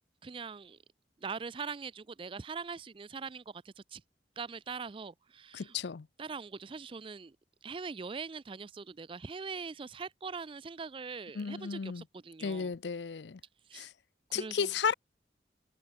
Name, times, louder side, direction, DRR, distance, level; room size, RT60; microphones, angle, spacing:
voice 1, 0.2-0.8 1.2-4.0 4.4-5.8 6.2-7.4 7.6-12.7 13.7-13.9 14.3-14.7, right 5 dB, 30° right, 0.4 m, -42 dB
voice 2, 5.5-6.1 11.4-12.0 12.4-13.4 13.7-13.9 14.3-14.9, left 6 dB, 75° left, 0.5 m, -34 dB
head